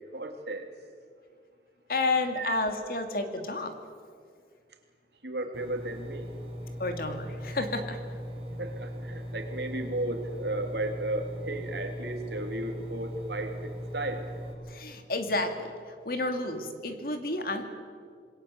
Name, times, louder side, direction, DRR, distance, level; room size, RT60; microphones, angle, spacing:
voice 1, 0.1-0.7 2.3-2.6 5.2-6.3 8.6-14.3, right 2 dB, 70° right, 4 dB, 3.3 m, -34 dB
voice 2, 1.9-3.7 6.8-8.0 14.7-17.7, left 2 dB, 55° left, 6 dB, 2.5 m, -31 dB
Engine, 5.5-14.5, equal, 35° right, 6.4 m, -39 dB
27.0 x 21.5 x 8.2 m, 2.1 s
head